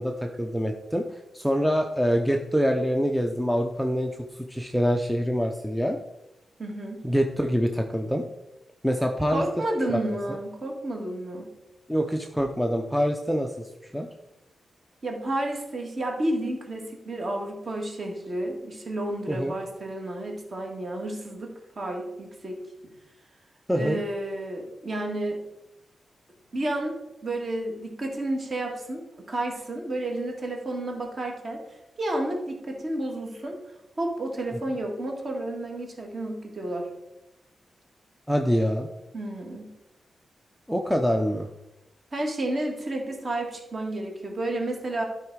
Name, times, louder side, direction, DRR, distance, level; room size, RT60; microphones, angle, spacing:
voice 1, 0.0-4.1 4.5-6.0 7.0-8.2 8.8-9.4 9.9-10.0 11.9-13.5 13.9-14.1 19.3-19.6 23.7-24.0 38.3-38.9 40.7-41.5, equal, ahead, 2 dB, 0.6 m, -25 dB
voice 2, 6.6-7.0 9.3-11.5 15.0-22.6 23.7-25.4 26.5-31.6 32.0-33.6 34.0-36.9 39.1-39.7 42.1-45.1, right 1 dB, 35° right, 1 dB, 1.9 m, -31 dB
12.0 x 4.9 x 4.7 m, 0.91 s
wide cardioid pair, 150°, 0 cm